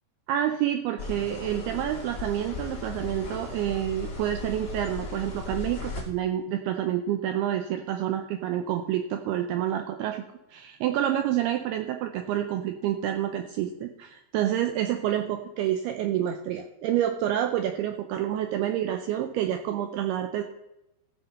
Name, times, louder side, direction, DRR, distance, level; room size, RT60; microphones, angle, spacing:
voice 1, 0.3-10.2 10.5-20.4, right 11 dB, 85° right, 6 dB, 2.3 m, -28 dB
sound 1, 1.0-6.0, left 4 dB, 30° left, 2.1 m, -37 dB
15.0 x 5.6 x 5.5 m, 0.92 s
omnidirectional pair, 5.1 m